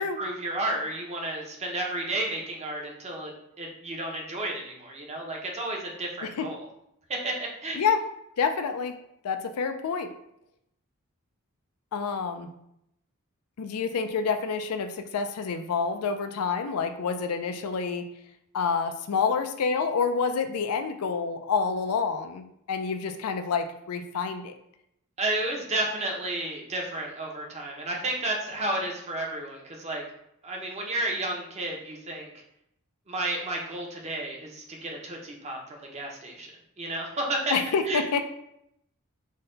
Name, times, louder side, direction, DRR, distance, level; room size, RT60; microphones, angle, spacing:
voice 1, 0.0-3.3 3.6-6.7 7.1-7.8 25.2-30.0 30.4-32.3 33.1-36.5 36.8-37.5 37.8-38.0, right 1 dB, 30° right, 0 dB, 0.7 m, -32 dB
voice 2, 8.4-9.0 9.2-10.1 11.9-12.5 13.6-18.1 18.5-24.5 37.5-38.3, left 5 dB, 85° left, 8 dB, 0.4 m, -28 dB
4.0 x 2.2 x 3.8 m, 0.78 s
head